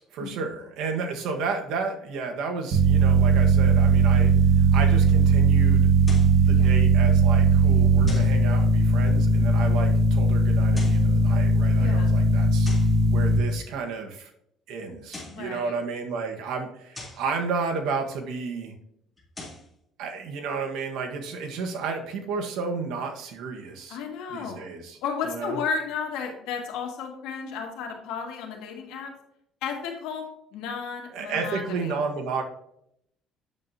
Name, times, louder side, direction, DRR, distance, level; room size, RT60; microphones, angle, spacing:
voice 1, 0.0-5.9 6.3-12.7 13.0-14.3 14.7-18.7 20.0-24.0 24.3-25.0 25.2-25.6 31.1-32.4, right 4 dB, 75° right, 3 dB, 1.4 m, -32 dB
sound 1, 2.7-13.4, right 3 dB, 50° right, 1.4 m, -19 dB
sound 2, 6.0-6.4 8.1-8.4 10.6-11.1 12.6-13.0 14.9-15.5 16.9-17.3 19.2-19.7, left 2 dB, 10° left, 3.2 m, -41 dB
voice 2, 11.7-12.2 15.2-15.7 23.9-24.6 25.0-29.1 29.6-32.0, left 6 dB, 85° left, 2 dB, 1.9 m, -33 dB
8.7 x 7.2 x 2.7 m, 0.75 s
cardioid pair, 120°, 0 cm